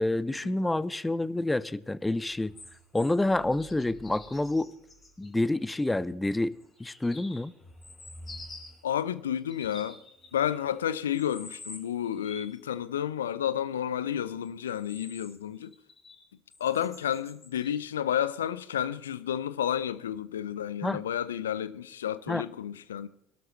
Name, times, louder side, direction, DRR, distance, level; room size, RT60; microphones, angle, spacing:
voice 1, 0.0-2.5 2.9-4.7 5.2-7.5 20.8-21.0 22.3-22.4, left 2 dB, 10° left, 0.7 m, -28 dB
sound 1, 2.3-5.8 6.5-8.9 9.4-10.8 11.1-12.6 14.4-16.2 16.5-17.8 18.5-18.6, left 2 dB, 25° left, 5.1 m, -49 dB
voice 2, 8.8-10.0 10.3-15.7 16.6-23.1, left 10 dB, 75° left, 0.6 m, -31 dB
22.0 x 12.5 x 3.2 m
figure-of-eight pair, 65°, 0 cm